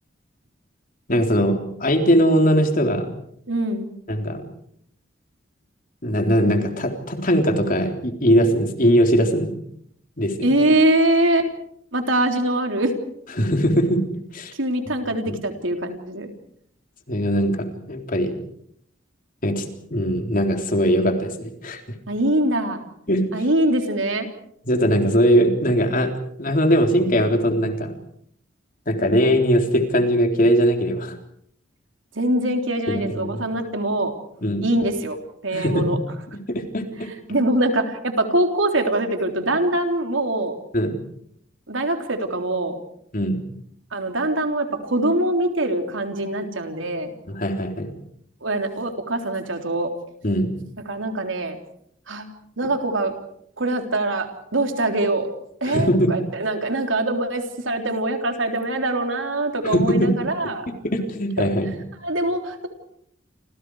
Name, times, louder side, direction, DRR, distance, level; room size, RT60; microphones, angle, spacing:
voice 1, 1.1-3.1 4.1-4.4 6.0-9.6 10.2-10.5 13.4-14.0 14.3-14.5 15.3-15.4 17.1-18.3 19.4-19.6 19.9-21.8 23.1-23.4 24.7-26.1 26.4-27.9 28.9-31.1 32.9-33.4 34.4-34.6 35.5-35.9 36.5-37.1 40.7-41.0 43.1-43.4 47.3-47.9 50.2-50.5 52.6-52.7 55.6-56.1 59.6-60.1 60.4-61.7, equal, 45° left, 4 dB, 3.8 m, -20 dB
voice 2, 3.5-3.9 10.4-11.5 11.9-12.9 14.6-16.3 22.1-22.8 23.3-24.3 32.2-34.1 34.6-35.2 35.4-36.0 37.3-40.6 41.7-42.8 43.9-47.1 48.4-49.9 50.9-51.6 52.1-52.3 52.6-53.1 53.6-55.3 55.6-60.7 61.4-61.5 62.0-62.7, right 1 dB, 80° right, 5 dB, 3.6 m, -23 dB
29.5 x 26.5 x 4.9 m, 0.70 s
head